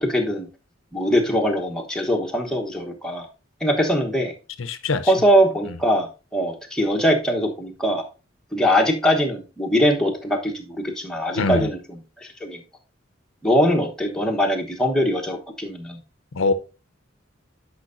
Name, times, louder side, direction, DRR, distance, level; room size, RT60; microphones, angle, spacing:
voice 1, 0.0-0.5 0.9-3.3 3.6-4.3 5.0-8.0 8.5-12.0 12.4-12.6 13.4-16.0, equal, 5° left, 1.1 m, -22 dB
voice 2, 4.6-5.1 11.3-11.7 16.3-16.5, left 3 dB, 75° left, 0.6 m, -22 dB
10.5 x 5.3 x 2.6 m
head